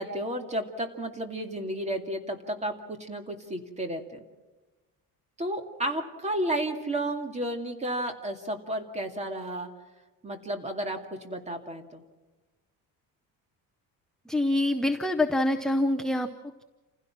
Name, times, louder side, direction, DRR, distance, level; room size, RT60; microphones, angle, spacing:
voice 1, 0.0-4.2 5.4-9.7 10.2-12.0, right 1 dB, 20° right, 4 dB, 2.4 m, -32 dB
voice 2, 14.3-16.6, left 1 dB, ahead, 5 dB, 0.7 m, -26 dB
29.0 x 16.5 x 6.0 m, 1.2 s
cardioid pair, 150°, 35 cm